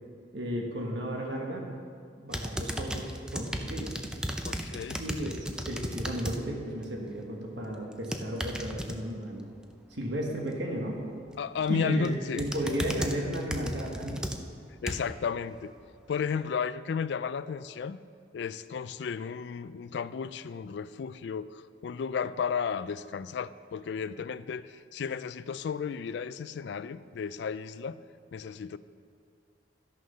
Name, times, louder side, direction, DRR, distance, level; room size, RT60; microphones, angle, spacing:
voice 1, 0.3-1.7 2.2-3.9 5.0-5.4 5.7-9.5 9.9-11.0 11.7-14.2, right 1 dB, 65° right, 0 dB, 1.3 m, -34 dB
sound 1, 2.3-6.4 6.8-7.1 7.9-8.9 11.3-11.7 12.0-15.2 15.8-15.9, equal, 5° right, 0.4 m, -35 dB
voice 2, 4.4-5.0 11.4-12.4 14.8-15.7 16.1-18.0 18.3-28.0 28.3-28.8, left 6 dB, 65° left, 16 dB, 0.3 m, -33 dB
12.5 x 6.5 x 5.5 m, 2.2 s
head